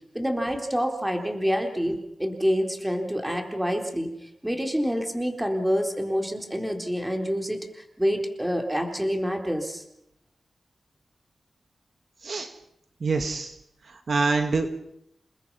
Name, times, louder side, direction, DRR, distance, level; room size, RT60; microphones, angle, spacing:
voice 1, 0.1-9.8, equal, 10° right, 3 dB, 3.9 m, -27 dB
voice 2, 13.0-13.6 13.9-14.7, right 3 dB, 60° right, 6 dB, 1.9 m, -25 dB
29.0 x 20.0 x 5.7 m, 0.77 s
wide cardioid pair, 95°, 0 cm